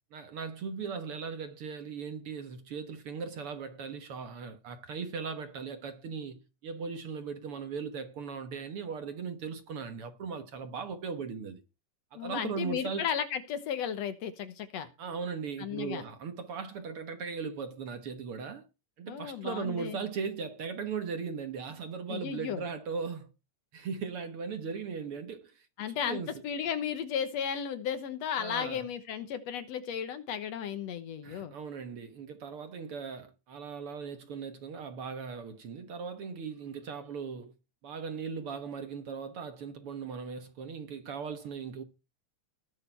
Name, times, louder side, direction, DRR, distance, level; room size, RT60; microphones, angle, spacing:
voice 1, 0.1-11.6 12.1-13.1 15.0-18.7 19.0-23.3 23.7-25.7 26.0-26.4 28.4-28.9 31.2-37.5 37.8-41.8, right 5 dB, 55° right, 1.8 m, -38 dB
voice 2, 12.2-14.9 15.6-16.0 19.1-20.0 22.1-22.7 25.8-31.5, left 8 dB, 65° left, 2.1 m, -34 dB
19.5 x 6.6 x 4.4 m
omnidirectional pair, 3.4 m